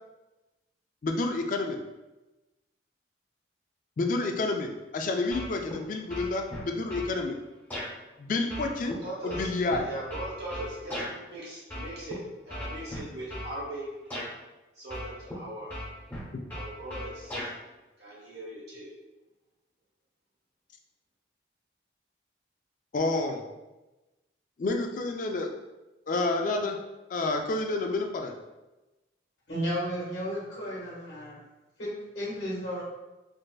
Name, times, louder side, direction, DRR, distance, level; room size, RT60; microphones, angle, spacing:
voice 1, 1.0-1.8 4.0-7.4 8.2-9.0 9.2-9.9 22.9-23.4 24.6-25.5 26.1-26.8 27.1-28.3, left 2 dB, 45° left, 4 dB, 0.3 m, -29 dB
sound 1, 5.3-5.8 6.1-7.1 7.7-7.9 8.5-11.1 11.7-12.1 12.5-13.5 14.1-14.3 14.9-15.4 15.7-17.5, left 1 dB, 10° left, 0.8 m, -37 dB
voice 2, 9.0-9.5 9.8-13.9 14.8-15.7 16.5-17.4 18.0-18.9, right 1 dB, 60° right, -6 dB, 1.0 m, -39 dB
voice 3, 29.5-31.4 31.8-32.8, equal, 70° left, -6 dB, 1.4 m, -33 dB
3.8 x 2.4 x 2.3 m, 1.1 s
head